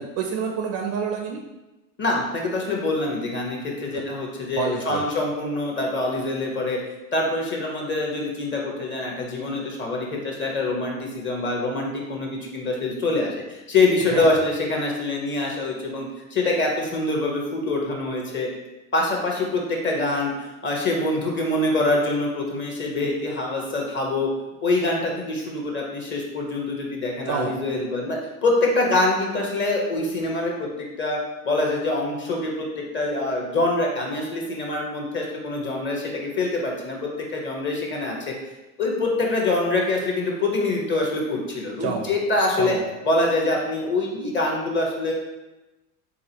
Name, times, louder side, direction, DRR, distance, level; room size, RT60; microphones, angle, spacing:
voice 1, 0.0-1.4 3.9-4.1 4.6-5.1 14.1-14.2 27.3-27.5 41.8-42.1 42.6-42.8, right 6 dB, 40° right, 3 dB, 0.4 m, -28 dB
voice 2, 2.0-6.8 7.1-18.5 18.9-20.3 20.6-24.3 24.6-30.7 31.0-31.2 31.4-38.3 38.8-42.7 43.0-45.1, left 2 dB, 25° left, 0 dB, 1.0 m, -25 dB
3.9 x 3.5 x 2.8 m, 1.0 s
hypercardioid pair, 95°, 41 cm